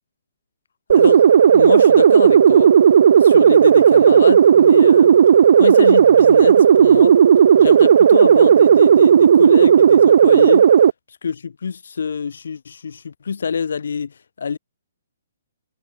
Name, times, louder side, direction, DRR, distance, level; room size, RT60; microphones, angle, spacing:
voice 1, 0.9-2.7 3.2-5.2 5.6-7.1 7.6-10.7 11.2-14.6, left 6 dB, 65° left, 2.7 m, -25 dB
sound 1, 0.9-10.9, right 8 dB, 45° right, 0.4 m, -11 dB
hypercardioid pair, 180°, 0 cm